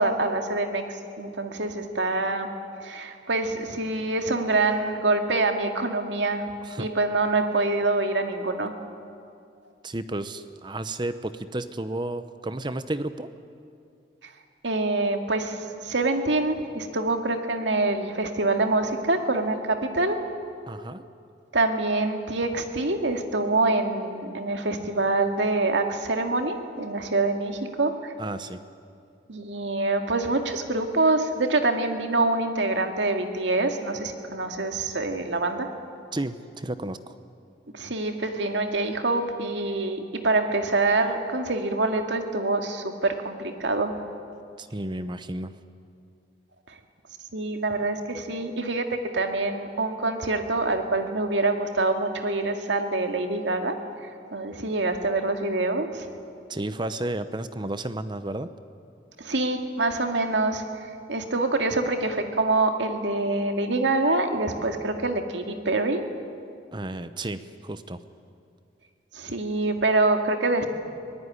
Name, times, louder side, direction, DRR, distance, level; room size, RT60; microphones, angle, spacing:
voice 1, 0.0-2.5 2.8-6.5 6.8-8.7 14.2-14.3 14.6-20.2 21.5-28.1 29.3-35.7 37.7-44.0 46.7-46.8 47.3-56.1 59.2-66.0 69.1-70.7, right 2 dB, 85° right, 5 dB, 2.2 m, -25 dB
voice 2, 9.8-13.3 20.7-21.0 28.2-28.6 36.1-37.2 44.6-45.5 56.5-58.5 66.7-68.0, right 1 dB, 25° right, 12 dB, 0.8 m, -32 dB
23.5 x 18.0 x 10.0 m, 2.4 s
head